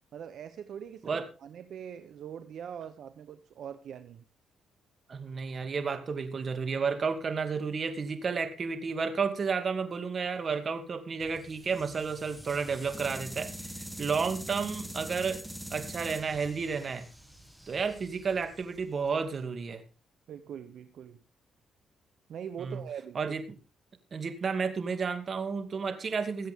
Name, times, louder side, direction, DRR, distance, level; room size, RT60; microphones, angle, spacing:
voice 1, 0.1-4.2 20.3-21.2 22.3-23.4, right 8 dB, 65° right, 10 dB, 0.9 m, -42 dB
voice 2, 5.1-13.7 14.0-15.4 15.7-17.1 17.7-19.8 22.6-22.8 23.1-23.4 24.1-26.5, right 5 dB, 45° right, 8 dB, 2.4 m, -31 dB
sound 1, 11.2-19.3, equal, 5° right, 1.6 m, -44 dB
20.5 x 8.1 x 3.7 m, 0.35 s
cardioid pair, 90°, 0 cm